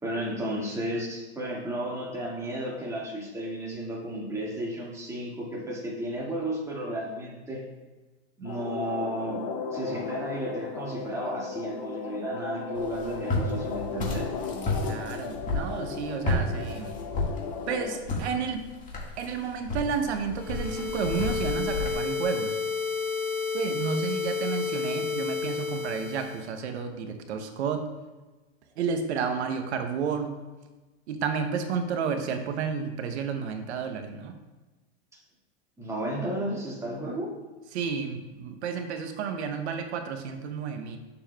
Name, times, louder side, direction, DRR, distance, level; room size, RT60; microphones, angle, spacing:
voice 1, 0.0-7.6 8.4-9.4 9.7-14.3 35.8-37.3, right 1 dB, 10° right, -4 dB, 1.8 m, -33 dB
sound 1, 8.5-18.0, left 6 dB, 50° left, 0.8 m, -36 dB
Walk footsteps, 12.8-21.9, left 2 dB, 25° left, 1.7 m, -32 dB
voice 2, 14.8-17.0 17.7-18.6 19.2-22.6 23.5-27.9 28.8-30.4 31.1-34.4 37.7-41.0, right 6 dB, 75° right, 6 dB, 0.9 m, -31 dB
sound 2, 20.3-26.5, left 5 dB, 5° left, 0.8 m, -31 dB
8.7 x 6.9 x 2.3 m, 1.2 s
hypercardioid pair, 130°, 33 cm